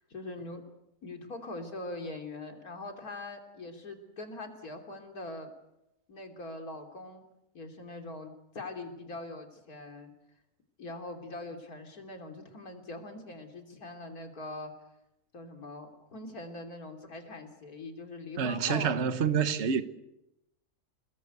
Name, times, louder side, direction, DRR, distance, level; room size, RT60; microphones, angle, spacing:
voice 1, 0.1-0.7 1.0-5.5 6.1-7.2 7.5-10.1 10.8-14.7 15.3-18.9, left 2 dB, 85° left, 3.8 m, -42 dB
voice 2, 18.4-19.8, right 6 dB, 50° right, 1.5 m, -27 dB
29.5 x 20.0 x 8.1 m
omnidirectional pair, 1.5 m